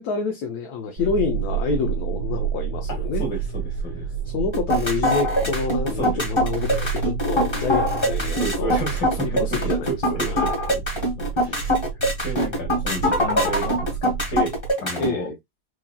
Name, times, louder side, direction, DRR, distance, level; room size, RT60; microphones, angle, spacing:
voice 1, 0.0-3.3 4.2-8.8 9.2-9.9 10.3-10.5 15.0-15.4, left 5 dB, 70° left, 1.1 m, -27 dB
sound 1, 1.0-14.7, right 6 dB, 60° right, 1.2 m, -29 dB
voice 2, 2.9-4.0 6.0-6.2 8.3-9.6 9.8-11.0 11.3-11.7 12.2-14.5 14.8-15.3, right 1 dB, 50° left, 1.9 m, -31 dB
sound 2, 4.5-15.1, equal, 15° left, 1.3 m, -22 dB
4.7 x 2.7 x 2.2 m
omnidirectional pair, 1.8 m